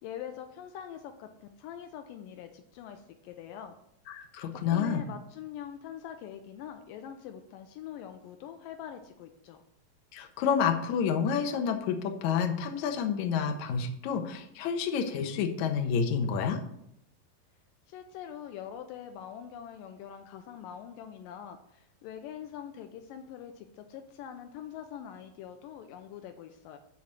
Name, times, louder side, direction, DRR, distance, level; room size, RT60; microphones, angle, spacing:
voice 1, 0.0-3.7 4.5-9.6 17.9-26.8, left 9 dB, 80° left, 7 dB, 2.3 m, -44 dB
voice 2, 4.1-5.0 10.1-16.6, left 6 dB, 65° left, 5 dB, 2.2 m, -29 dB
12.0 x 4.2 x 7.5 m, 0.74 s
omnidirectional pair, 4.0 m